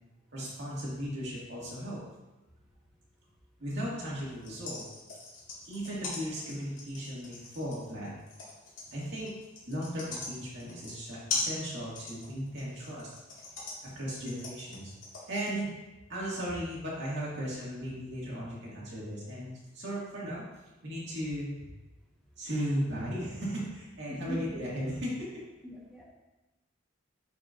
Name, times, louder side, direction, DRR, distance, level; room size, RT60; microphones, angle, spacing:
voice 1, 0.3-2.0 3.6-4.8 5.6-8.1 8.9-9.3 9.7-13.1 14.0-14.9 15.3-15.7 16.1-20.4 20.8-21.7 22.4-25.4, equal, 60° right, -6 dB, 2.1 m, -36 dB
sound 1, 4.3-15.6, left 3 dB, 80° left, 2.1 m, -39 dB
voice 2, 24.1-24.6 25.6-26.0, right 1 dB, ahead, -6 dB, 1.2 m, -40 dB
9.6 x 4.7 x 2.6 m, 1.1 s
head